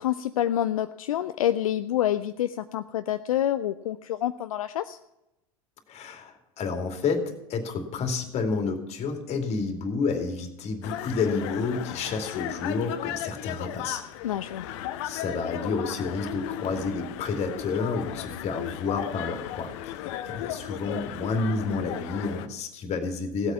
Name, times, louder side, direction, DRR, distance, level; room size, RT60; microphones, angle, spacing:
voice 1, 0.0-5.0 14.2-14.7, left 11 dB, 70° left, 10 dB, 0.5 m, -27 dB
voice 2, 5.9-14.0 15.0-23.5, left 4 dB, 35° left, 5 dB, 2.6 m, -30 dB
sound 1, 10.8-22.5, left 12 dB, 55° left, 0.9 m, -36 dB
16.5 x 8.2 x 5.8 m, 0.89 s
figure-of-eight pair, 80°, 18 cm